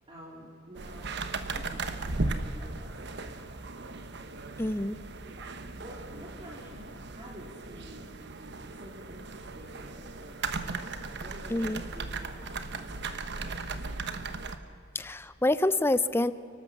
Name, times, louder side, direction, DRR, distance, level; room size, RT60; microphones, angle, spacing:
voice 1, 0.1-1.1 1.5-4.0 4.9-5.0 5.4-5.5 5.7-14.1, equal, 30° right, -5 dB, 3.0 m, -50 dB
sound 1, 0.7-14.6, right 3 dB, 60° right, 1.2 m, -37 dB
voice 2, 4.6-5.0 11.5-11.8 14.9-16.3, left 2 dB, 10° left, 15 dB, 0.6 m, -27 dB
29.5 x 12.5 x 7.2 m, 2.4 s
head